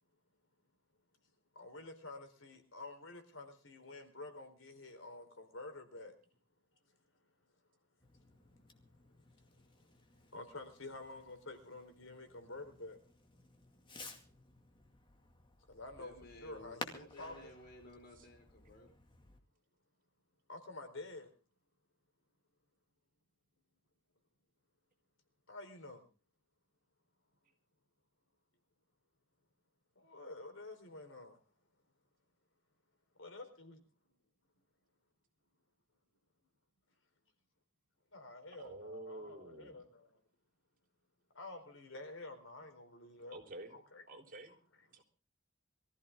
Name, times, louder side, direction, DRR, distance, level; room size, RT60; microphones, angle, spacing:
voice 1, 1.6-6.2 10.3-13.0 15.7-16.1 16.4-17.5 20.5-21.3 25.5-26.0 30.0-31.4 33.2-33.8 38.1-40.1 41.3-43.4 43.7-44.0, left 2 dB, 85° left, 7 dB, 4.2 m, -49 dB
Fireworks, 8.0-19.4, left 2 dB, 25° left, 2.2 m, -54 dB
voice 2, 15.9-18.9, left 1 dB, 55° left, 3 dB, 4.9 m, -56 dB
voice 3, 38.5-39.8 43.3-43.8 44.1-44.6 44.9-45.0, right 1 dB, 45° right, 4 dB, 3.8 m, -49 dB
23.5 x 14.5 x 3.7 m, 0.36 s
head